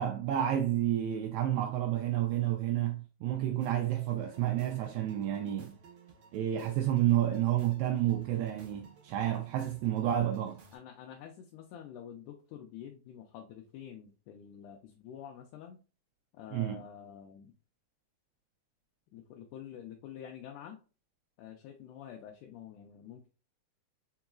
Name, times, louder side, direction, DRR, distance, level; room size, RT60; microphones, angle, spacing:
voice 1, 0.0-5.7 6.3-10.6 16.5-16.8, right 12 dB, 90° right, 1.5 m, -30 dB
sound 1, 3.6-10.8, right 4 dB, 60° right, 1.3 m, -57 dB
voice 2, 10.7-15.8 16.3-17.5 19.1-20.8 21.4-23.3, left 9 dB, 80° left, 2.0 m, -48 dB
4.6 x 4.0 x 2.3 m
omnidirectional pair, 3.7 m